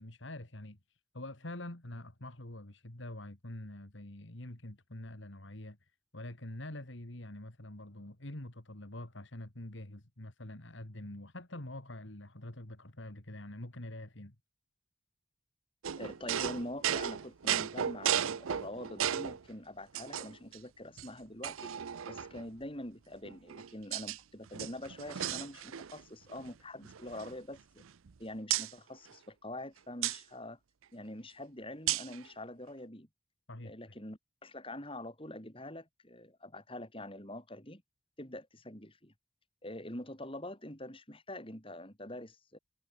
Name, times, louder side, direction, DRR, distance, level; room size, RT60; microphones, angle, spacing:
voice 1, 0.0-14.4 33.5-34.0, left 1 dB, 65° left, 2.7 m, -46 dB
sound 1, 15.8-19.4 19.9-20.6 21.0-21.1 21.4-22.5 23.2-24.2 24.5-26.0 26.3-26.5 26.8-28.1 28.5-28.7 30.0-30.2 31.9-32.2, right 10 dB, 90° right, 0.6 m, -35 dB
voice 2, 16.0-21.7 22.1-27.8 28.2-30.6 30.9-33.1 33.6-37.8 38.2-39.1 39.6-42.6, left 1 dB, 25° left, 7.1 m, -45 dB
head